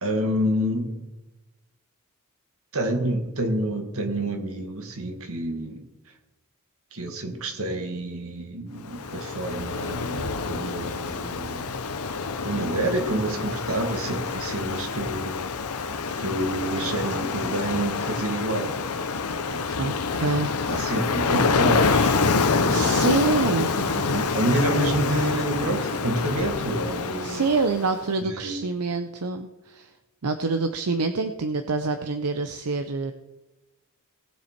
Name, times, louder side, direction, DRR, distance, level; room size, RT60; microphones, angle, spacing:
voice 1, 0.0-0.9 2.7-5.8 6.9-11.7 12.4-15.5 16.2-18.8 19.5-20.0 20.7-23.0 23.7-27.4 28.3-28.6, right 1 dB, 65° right, 5 dB, 2.0 m, -28 dB
Ocean, 8.8-28.0, left 4 dB, 75° left, 0.9 m, -27 dB
voice 2, 19.8-20.5 22.7-23.7 27.2-29.9 30.2-33.1, right 3 dB, 85° right, 8 dB, 0.7 m, -26 dB
18.5 x 7.1 x 4.5 m, 1.1 s
head